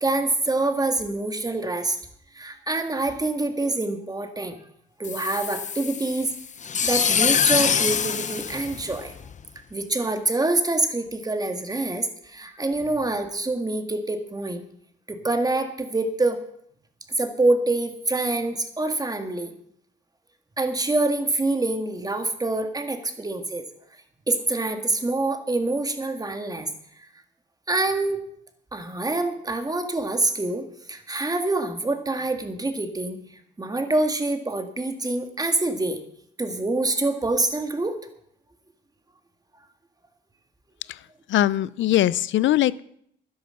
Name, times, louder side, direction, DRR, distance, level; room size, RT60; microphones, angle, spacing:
voice 1, 0.0-2.0 2.3-4.6 5.0-6.3 6.8-9.1 9.7-14.6 15.1-16.4 17.2-19.5 20.6-23.6 24.3-26.7 27.7-28.2 28.7-33.2 33.6-36.0 36.4-38.0, right 2 dB, 20° right, 6 dB, 2.0 m, -26 dB
sound 1, 5.0-9.4, left 7 dB, 35° left, 0.7 m, -24 dB
voice 2, 41.3-42.8, left 13 dB, 70° left, 20 dB, 0.5 m, -21 dB
12.0 x 10.5 x 6.5 m, 0.69 s
cardioid pair, 90°, 20 cm